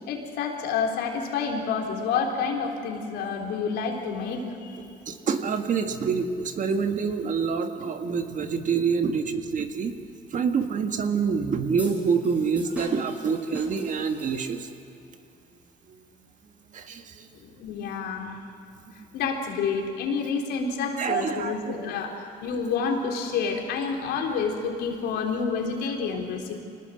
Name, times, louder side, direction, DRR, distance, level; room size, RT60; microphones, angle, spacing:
voice 1, 0.0-4.8 17.4-18.3 19.1-26.6, left 5 dB, 80° left, 1 dB, 4.0 m, -29 dB
voice 2, 5.1-9.9 10.3-14.7 15.9-16.0 16.7-17.3 21.0-21.9, right 5 dB, 50° right, 6 dB, 1.7 m, -26 dB
sound 1, 11.8-14.8, equal, 5° right, 6.5 m, -42 dB
25.0 x 19.5 x 7.8 m, 2.6 s
cardioid pair, 110°, 17 cm